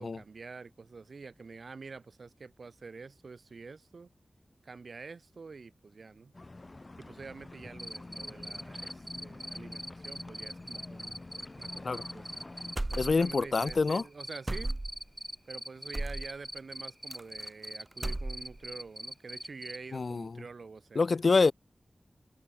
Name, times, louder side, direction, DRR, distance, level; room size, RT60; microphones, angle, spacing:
voice 1, 0.0-4.1 4.6-6.3 7.0-11.2 11.6-12.4 12.9-14.8 15.5-21.3, right 4 dB, 70° right, 2.6 m, -47 dB
sound 1, 6.3-12.8, left 2 dB, 35° left, 4.3 m, -47 dB
Cricket, 7.8-19.8, equal, ahead, 1.2 m, -41 dB
sound 2, 12.8-13.4 13.7-13.8 14.5-15.1 15.9-16.3 17.1-17.7 17.9-18.7, right 1 dB, 25° right, 2.0 m, -35 dB
voice 2, 13.0-14.0 19.9-20.3 20.9-21.5, left 4 dB, 65° left, 1.3 m, -26 dB
wide cardioid pair, 65°, 0 cm